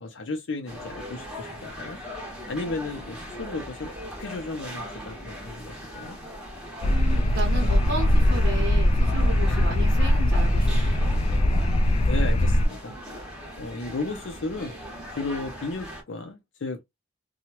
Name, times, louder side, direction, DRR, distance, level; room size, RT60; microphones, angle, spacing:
voice 1, 0.0-2.0 2.5-6.2 12.0-13.0 13.6-14.7 15.2-16.8, left 3 dB, 80° left, 0.6 m, -34 dB
sound 1, 0.7-16.0, equal, 5° right, 1.1 m, -39 dB
sound 2, 6.8-12.7, left 1 dB, 30° left, 0.3 m, -21 dB
voice 2, 6.8-10.9, right 1 dB, 55° right, 1.1 m, -34 dB
2.9 x 2.3 x 2.8 m
head